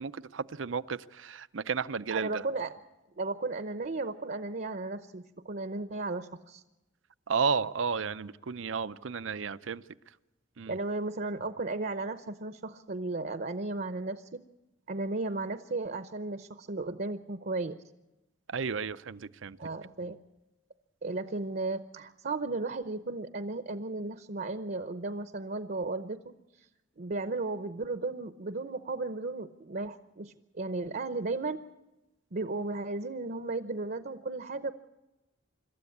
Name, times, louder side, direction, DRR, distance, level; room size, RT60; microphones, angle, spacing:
voice 1, 0.0-2.4 7.3-9.8 10.6-10.8 18.5-19.6, right 5 dB, 80° right, 0.6 m, -33 dB
voice 2, 2.1-2.7 3.2-6.6 10.7-14.4 14.9-17.8 19.6-20.2 21.0-26.2 27.0-31.6 32.3-34.7, right 3 dB, 50° right, 0.8 m, -35 dB
26.5 x 13.5 x 8.5 m
head